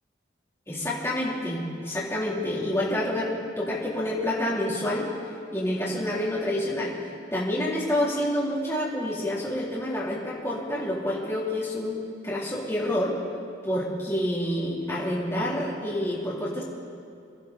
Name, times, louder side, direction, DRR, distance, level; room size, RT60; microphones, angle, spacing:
voice 1, 0.7-5.1 5.5-6.9 7.3-13.2 13.6-16.6, left 1 dB, 15° left, -7 dB, 3.1 m, -28 dB
24.5 x 13.5 x 4.1 m, 2.6 s
head